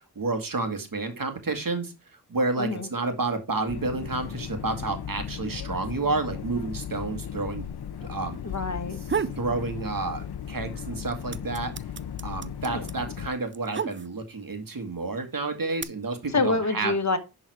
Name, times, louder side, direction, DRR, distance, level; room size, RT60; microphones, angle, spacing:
voice 1, 0.2-1.9 2.3-7.7 8.0-8.4 9.4-11.7 12.2-16.9, right 3 dB, 60° right, 6 dB, 1.8 m, -30 dB
voice 2, 2.6-2.9 8.4-9.0 12.7-12.9 16.3-17.2, left 3 dB, 45° left, 9 dB, 1.2 m, -26 dB
sound 1, 3.7-13.3, left 9 dB, 90° left, 0.6 m, -36 dB
sound 2, 8.8-9.5 9.9-10.6 10.8-14.4 15.2-15.8, right 6 dB, 30° right, 0.5 m, -32 dB
10.5 x 4.0 x 4.7 m, 0.27 s
wide cardioid pair, 60°, 37 cm